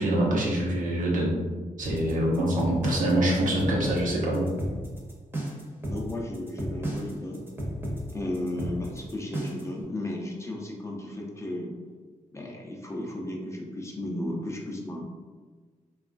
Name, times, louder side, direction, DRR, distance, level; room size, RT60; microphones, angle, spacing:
voice 1, 0.0-1.3 1.8-4.5, right 1 dB, 70° right, -3 dB, 0.7 m, -25 dB
sound 1, 1.8-9.8, equal, 15° right, 0.7 m, -33 dB
voice 2, 5.9-7.4 8.1-11.7 12.3-15.0, left 1 dB, 20° left, -1 dB, 0.5 m, -34 dB
2.9 x 2.3 x 2.4 m, 1.4 s
cardioid pair, 90°, 14 cm